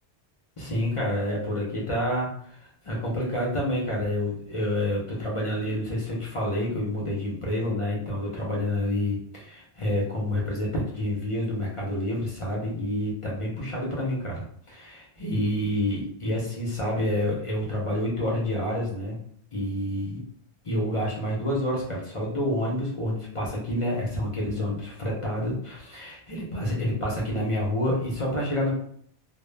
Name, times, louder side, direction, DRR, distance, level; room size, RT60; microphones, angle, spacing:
voice 1, 0.6-19.2 19.5-20.2 20.6-28.7, left 1 dB, 45° left, -3 dB, 0.4 m, -28 dB
2.0 x 2.0 x 3.2 m, 0.63 s
omnidirectional pair, 1.2 m